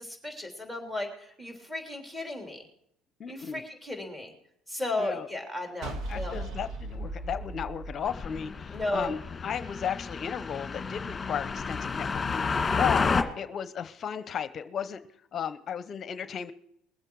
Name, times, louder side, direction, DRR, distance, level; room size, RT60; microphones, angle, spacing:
voice 1, 0.0-2.6 3.3-4.3 4.7-6.4 8.7-9.1, left 2 dB, 10° right, 2 dB, 3.2 m, -34 dB
voice 2, 3.2-3.6 5.0-5.3 6.1-13.0 13.4-15.0 15.3-16.5, left 8 dB, 40° left, 12 dB, 0.8 m, -34 dB
sound 1, 5.8-9.0, right 2 dB, 60° right, 2.5 m, -37 dB
sound 2, 8.0-13.2, left 4 dB, 20° left, 2.0 m, -30 dB
21.5 x 7.8 x 4.7 m, 0.72 s
supercardioid pair, 95°, 0 cm